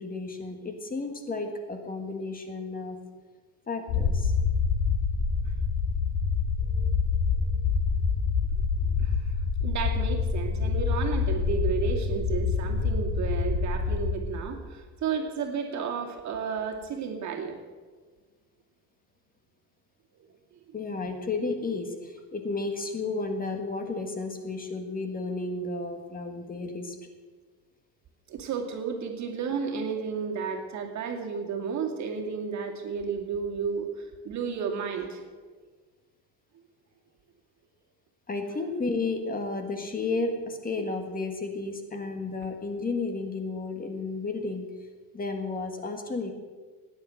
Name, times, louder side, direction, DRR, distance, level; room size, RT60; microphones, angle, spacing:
voice 1, 0.0-3.0 3.7-4.3 6.7-7.0 20.7-27.0 38.3-44.7 45.1-46.3, left 3 dB, 25° left, 5 dB, 1.6 m, -32 dB
sound 1, 3.9-14.2, left 5 dB, 80° left, 4.2 m, -26 dB
voice 2, 9.0-9.3 9.6-17.6 28.3-35.3, right 6 dB, 55° right, 2 dB, 2.5 m, -32 dB
16.5 x 10.0 x 7.9 m, 1.4 s
cardioid pair, 150°, 34 cm